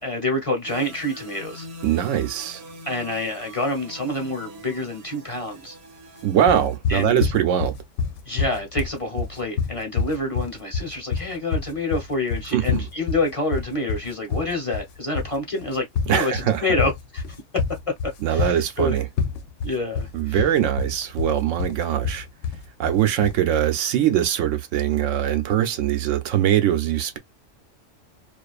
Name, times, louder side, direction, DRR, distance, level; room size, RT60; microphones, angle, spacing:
voice 1, 0.0-1.7 2.8-5.8 6.9-7.3 8.2-17.2 18.3-19.0 19.6-20.4, left 2 dB, 30° left, 0.9 m, -27 dB
sound 1, 0.7-6.8, right 1 dB, 60° right, 0.9 m, -43 dB
voice 2, 1.8-2.6 6.2-7.7 12.5-12.9 16.1-16.7 18.2-19.0 20.1-22.3 22.8-27.2, right 10 dB, 85° right, 1.0 m, -22 dB
sound 2, 6.5-23.4, left 5 dB, 80° left, 0.9 m, -27 dB
2.5 x 2.4 x 2.3 m
omnidirectional pair, 1.3 m